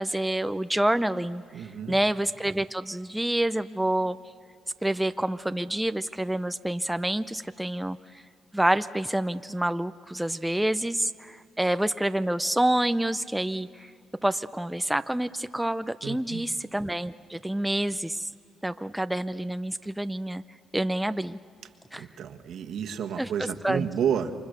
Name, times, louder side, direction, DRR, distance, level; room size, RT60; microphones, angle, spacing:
voice 1, 0.0-4.2 4.8-8.2 8.5-13.9 14.2-18.3 18.6-20.4 20.7-21.4 21.9-22.1 23.2-23.9, right 1 dB, 5° right, 11 dB, 0.6 m, -28 dB
voice 2, 1.5-1.9 16.0-16.5 22.0-24.3, right 8 dB, 70° right, 6 dB, 1.6 m, -30 dB
29.0 x 24.5 x 6.7 m, 2.3 s
cardioid pair, 90°, 0 cm